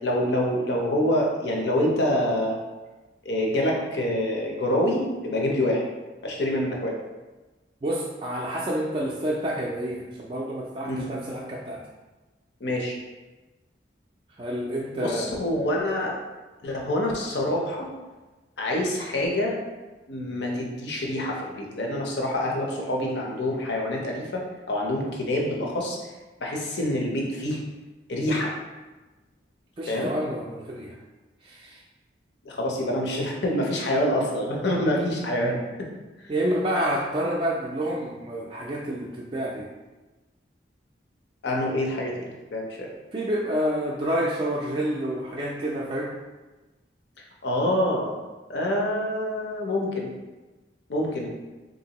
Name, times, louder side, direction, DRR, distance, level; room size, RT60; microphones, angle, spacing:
voice 1, 0.0-2.6 3.2-5.8 6.2-7.0 10.8-11.1 12.6-13.0 14.9-16.2 16.6-17.9 18.6-19.5 20.1-26.0 26.4-27.6 28.1-28.5 29.9-30.1 32.4-35.6 41.4-42.9 47.4-48.1 48.5-50.1 50.9-51.3, left 1 dB, 70° left, -1 dB, 0.7 m, -26 dB
voice 2, 7.8-11.8 14.4-15.3 29.8-30.9 31.4-31.8 36.3-39.7 43.1-46.1, equal, 30° right, -4 dB, 0.3 m, -28 dB
3.5 x 2.6 x 2.9 m, 1.2 s
head